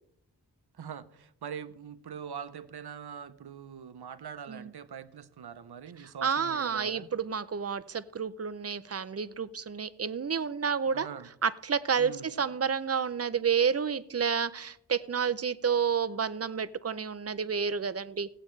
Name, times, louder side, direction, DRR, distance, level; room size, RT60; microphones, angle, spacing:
voice 1, 0.8-7.1 10.9-11.3 12.0-12.3, right 8 dB, 65° right, 0.7 m, -43 dB
voice 2, 6.0-11.1 11.4-18.3, right 6 dB, 40° right, 0.5 m, -30 dB
17.0 x 8.6 x 3.2 m
wide cardioid pair, 90°, 41 cm